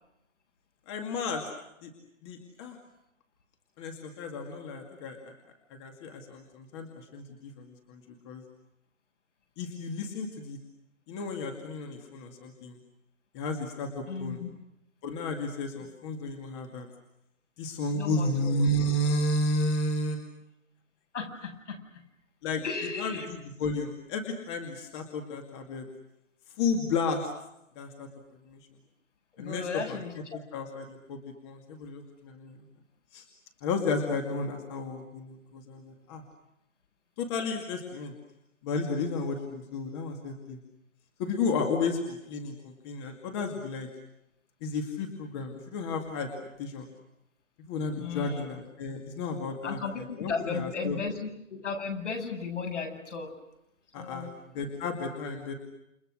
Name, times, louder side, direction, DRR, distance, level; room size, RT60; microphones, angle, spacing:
voice 1, 0.9-1.4 1.8-1.9 2.2-2.8 3.8-5.2 5.8-8.4 9.6-10.6 11.1-12.8 13.3-14.4 15.0-16.9 17.6-20.2 22.4-22.6 23.0-25.9 26.6-27.3 27.8-28.1 28.5-28.6 29.4-30.0 30.3-32.6 33.1-33.3 33.6-36.2 37.2-38.1 38.6-40.6 41.2-43.9 44.6-46.3 46.6-46.9 47.7-51.0 53.9-54.3 54.5-55.5, left 2 dB, 20° left, 4 dB, 2.3 m, -32 dB
voice 2, 14.1-14.5 17.9-18.6 21.1-21.8 22.6-23.3 29.4-30.1 48.0-48.6 49.6-53.3 54.0-54.3, left 5 dB, 60° left, 3 dB, 7.8 m, -35 dB
29.5 x 29.0 x 6.4 m, 0.84 s
hypercardioid pair, 165°, 40 cm